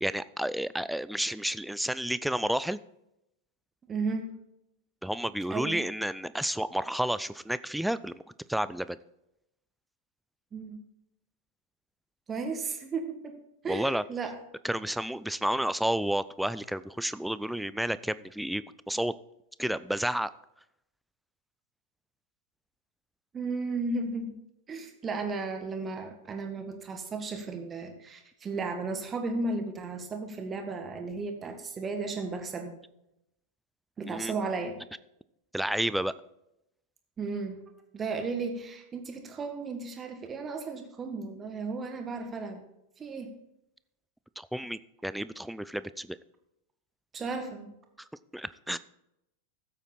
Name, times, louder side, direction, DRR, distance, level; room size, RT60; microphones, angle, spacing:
voice 1, 0.0-2.8 5.0-8.2 8.5-9.0 13.7-14.0 14.6-19.1 19.6-20.3 34.0-34.3 35.5-36.1 44.4-46.2 48.3-48.8, right 1 dB, ahead, 16 dB, 0.4 m, -31 dB
voice 2, 3.9-4.3 5.5-5.8 10.5-10.8 12.3-13.4 13.6-14.4 23.3-24.3 24.7-32.8 34.0-34.8 37.2-37.6 37.9-42.6 43.0-43.3 47.1-47.7, right 3 dB, 20° right, 5 dB, 1.8 m, -34 dB
14.5 x 8.1 x 4.3 m, 0.83 s
figure-of-eight pair, 90°, 0 cm